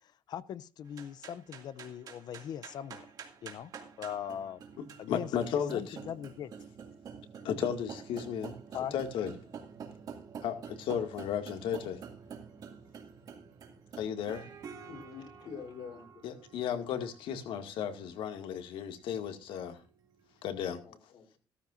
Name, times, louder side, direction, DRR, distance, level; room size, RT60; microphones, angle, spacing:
voice 1, 0.0-3.1 3.4-3.7 4.0-4.6 5.0-6.5 8.7-9.0, left 9 dB, 55° left, 0.5 m, -40 dB
sound 1, 0.9-20.4, right 6 dB, 45° right, 2.3 m, -49 dB
voice 2, 4.8-6.0 7.4-8.6 8.9-9.3 10.4-12.0 13.9-14.5 16.2-19.8 20.4-20.8, left 8 dB, 85° left, 2.1 m, -34 dB
voice 3, 14.9-16.3 20.8-21.4, left 6 dB, 70° left, 3.9 m, -47 dB
16.0 x 14.0 x 2.6 m
cardioid pair, 175°, 9 cm